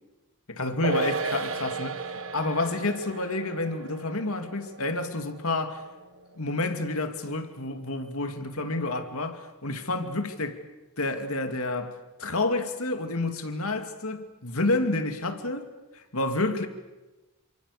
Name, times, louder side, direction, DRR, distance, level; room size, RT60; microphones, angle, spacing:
voice 1, 0.5-5.8 6.4-10.6 11.0-15.7 16.1-16.7, left 2 dB, 75° left, 2.6 m, -29 dB
sound 1, 0.8-7.5 7.8-7.9, right 4 dB, 60° right, 1.2 m, -35 dB
29.5 x 26.5 x 6.8 m
head